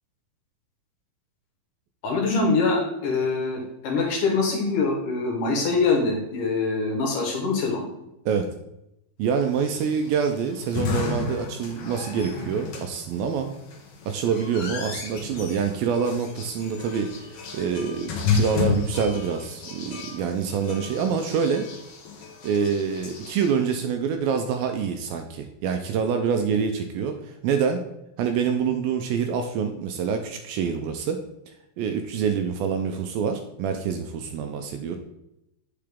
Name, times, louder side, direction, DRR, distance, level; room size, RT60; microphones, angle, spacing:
voice 1, 2.0-7.8, left 3 dB, 65° left, 0 dB, 2.4 m, -24 dB
voice 2, 9.2-13.5 14.1-21.7 22.4-27.8 28.2-31.2 31.8-35.0, right 6 dB, 80° right, 6 dB, 2.2 m, -26 dB
sound 1, 9.5-23.8, left 5 dB, 80° left, 1.3 m, -32 dB
8.7 x 5.7 x 3.5 m, 0.87 s
omnidirectional pair, 4.5 m